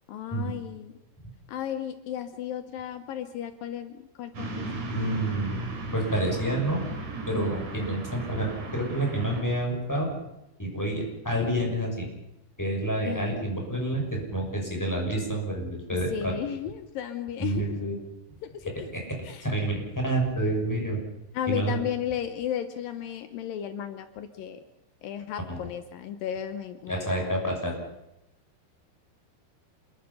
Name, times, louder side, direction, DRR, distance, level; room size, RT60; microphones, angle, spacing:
voice 1, 0.1-0.9 1.5-4.9 13.0-13.4 16.1-17.8 18.4-18.9 19.2-19.4 21.3-24.6 25.0-27.5, left 10 dB, 85° left, 9 dB, 2.0 m, -34 dB
sound 1, 4.3-9.4, right 2 dB, 40° right, 4.4 m, -36 dB
voice 2, 4.9-5.6 5.9-6.8 7.3-10.1 10.6-12.1 12.6-16.3 17.4-18.0 18.7-19.0 19.4-21.0 21.5-21.8 25.5-25.6 26.9-27.8, right 1 dB, 5° left, 0 dB, 5.6 m, -28 dB
28.0 x 22.0 x 5.6 m, 0.89 s
omnidirectional pair, 5.5 m